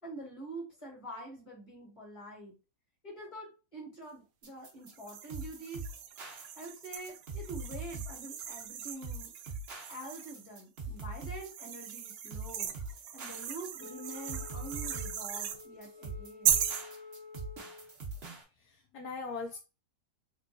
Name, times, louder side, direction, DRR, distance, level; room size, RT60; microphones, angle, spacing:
voice 1, 0.0-2.6 3.0-5.8 6.5-9.3 9.9-12.7 13.1-16.6, right 2 dB, 20° left, -1 dB, 1.5 m, -45 dB
sound 1, 4.4-18.4, right 3 dB, 45° right, 0.9 m, -43 dB
sound 2, 4.9-10.5 11.1-15.6 16.4-16.9, right 9 dB, 70° right, 0.9 m, -37 dB
Wind instrument woodwind instrument, 13.8-17.9, left 4 dB, 55° left, 0.9 m, -50 dB
voice 2, 18.5-19.6, left 4 dB, 75° left, 3 dB, 1.1 m, -40 dB
3.6 x 3.0 x 2.6 m, 0.30 s
omnidirectional pair, 1.9 m